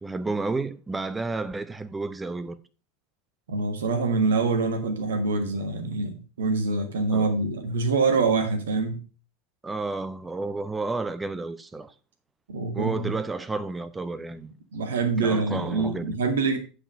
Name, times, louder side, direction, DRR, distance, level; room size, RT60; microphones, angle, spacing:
voice 1, 0.0-2.6 7.1-7.3 9.6-11.9 12.7-14.5 15.2-16.2, right 3 dB, 15° right, 0.8 m, -31 dB
voice 2, 3.5-9.0 12.5-13.2 14.7-16.6, right 4 dB, 70° right, 1.6 m, -25 dB
8.7 x 5.1 x 5.5 m
figure-of-eight pair, 80°, 0 cm